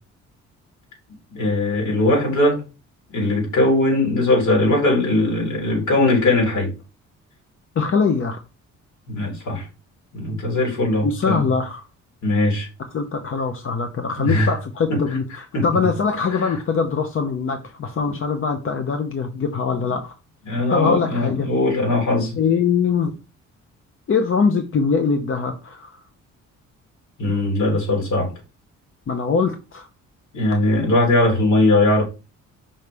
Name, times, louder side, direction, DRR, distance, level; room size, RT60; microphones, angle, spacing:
voice 1, 1.3-2.6 3.1-6.7 9.1-9.6 10.1-11.4 12.2-12.7 14.2-14.5 14.9-15.0 15.5-15.6 20.5-22.4 27.2-28.3 30.3-32.0, left 2 dB, 70° left, 3.4 m, -19 dB
voice 2, 7.7-8.4 11.0-11.8 12.9-20.1 20.7-21.5 22.4-23.1 24.1-26.0 29.1-29.9, left 5 dB, 45° left, 0.8 m, -22 dB
5.7 x 3.3 x 5.1 m
cardioid pair, 90°, 30 cm